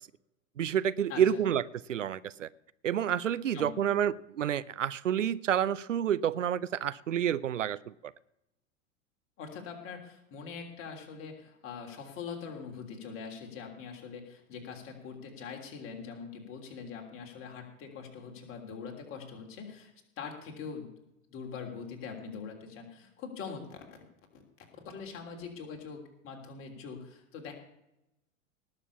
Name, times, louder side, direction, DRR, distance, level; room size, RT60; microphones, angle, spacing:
voice 1, 0.6-1.6 1.9-2.5 2.8-7.9, right 9 dB, 70° right, 18 dB, 0.6 m, -29 dB
voice 2, 1.1-1.4 3.5-4.0 9.4-20.9 21.3-23.8 24.3-24.4 24.8-27.5, left 6 dB, 35° left, 2 dB, 3.4 m, -43 dB
19.0 x 6.8 x 7.0 m, 0.87 s
figure-of-eight pair, 90°, 39 cm